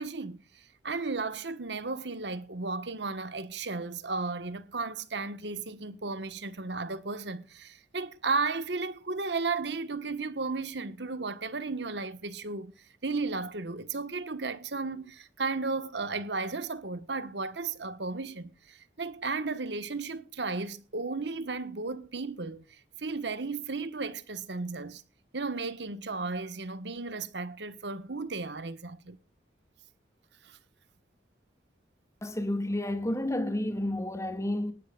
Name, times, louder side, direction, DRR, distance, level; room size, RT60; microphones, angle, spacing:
voice 1, 0.0-12.7 13.0-25.0 25.3-29.2 30.4-30.6, right 3 dB, 80° right, 1.4 m, -34 dB
voice 2, 32.2-34.7, left 1 dB, 15° left, 2.0 m, -30 dB
19.5 x 12.0 x 2.4 m
head